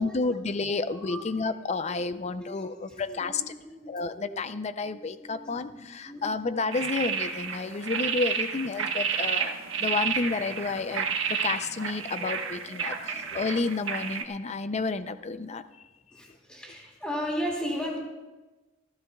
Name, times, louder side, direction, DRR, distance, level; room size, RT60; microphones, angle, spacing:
voice 1, 0.0-3.4 3.9-15.6, left 3 dB, 35° left, 12 dB, 0.5 m, -31 dB
voice 2, 0.7-1.2 2.4-4.4 4.8-5.8 6.0-6.5 12.2-13.6 16.1-18.0, equal, 5° left, -3 dB, 3.1 m, -37 dB
sound 1, 6.7-14.2, right 6 dB, 80° right, 1.2 m, -30 dB
28.0 x 12.0 x 2.3 m, 1.1 s
head